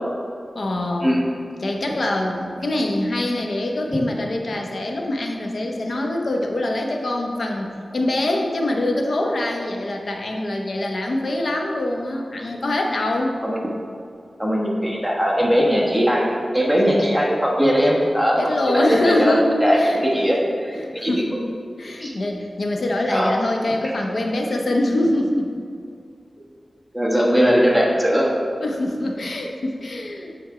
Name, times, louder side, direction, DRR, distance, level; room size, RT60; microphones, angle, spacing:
voice 1, 0.5-1.2 1.6-13.4 18.4-20.0 20.8-21.4 21.8-25.5 28.6-30.3, left 1 dB, 70° left, 1 dB, 0.9 m, -24 dB
voice 2, 14.4-18.4 18.7-21.1 22.0-22.1 23.1-23.3 26.9-28.3, equal, ahead, -3 dB, 1.2 m, -19 dB
8.7 x 3.4 x 4.9 m, 2.4 s
wide cardioid pair, 70°, 0 cm